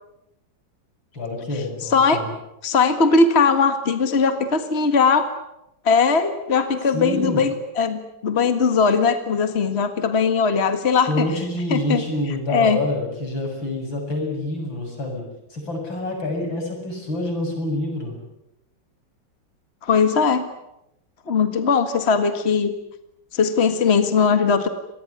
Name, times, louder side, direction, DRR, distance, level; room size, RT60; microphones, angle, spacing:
voice 1, 1.1-2.3 6.9-7.4 11.1-15.2 15.5-18.2, left 1 dB, 90° left, 2 dB, 8.3 m, -27 dB
voice 2, 1.8-2.2 2.6-5.3 5.9-11.3 11.7-12.0 12.5-12.8 19.8-20.4 21.3-22.7 23.3-24.7, left 5 dB, 35° left, 9 dB, 2.0 m, -19 dB
26.5 x 20.0 x 9.7 m, 0.85 s
omnidirectional pair, 2.0 m